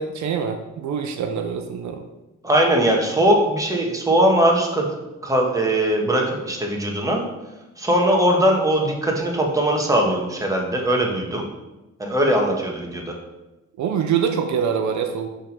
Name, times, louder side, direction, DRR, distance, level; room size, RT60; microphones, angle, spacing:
voice 1, 0.0-2.0 13.8-15.3, right 7 dB, 70° right, 5 dB, 0.7 m, -24 dB
voice 2, 2.4-4.9 5.2-7.2 7.8-11.5 12.0-13.2, right 1 dB, 10° right, 0 dB, 1.3 m, -20 dB
5.5 x 3.6 x 5.3 m, 1.0 s
cardioid pair, 90°, 30 cm